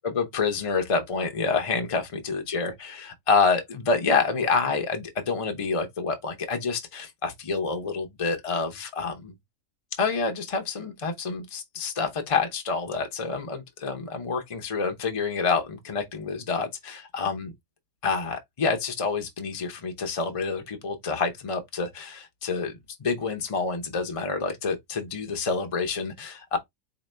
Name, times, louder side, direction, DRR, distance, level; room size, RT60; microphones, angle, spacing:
voice 1, 0.1-9.3 10.0-17.5 18.0-22.7 23.0-26.6, left 4 dB, 50° left, 0.4 m, -28 dB
4.1 x 2.9 x 3.2 m
omnidirectional pair, 1.7 m